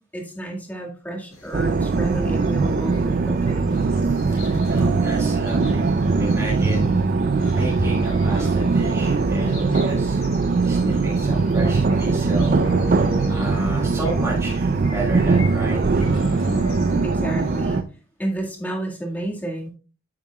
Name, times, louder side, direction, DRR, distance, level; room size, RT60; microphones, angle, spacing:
voice 1, 0.1-3.7 16.4-16.7 17.0-17.8 18.2-19.7, right 1 dB, 10° left, -1 dB, 1.9 m, -31 dB
sound 1, 1.3-17.8, left 3 dB, 70° left, 3.6 m, -42 dB
sound 2, 1.5-17.8, right 4 dB, 40° right, 0.5 m, -21 dB
voice 2, 4.0-4.4 4.7-6.9 7.5-10.2 10.6-12.6 13.3-15.8, right 1 dB, 15° right, -6 dB, 2.0 m, -33 dB
9.0 x 8.5 x 2.3 m, 0.36 s
head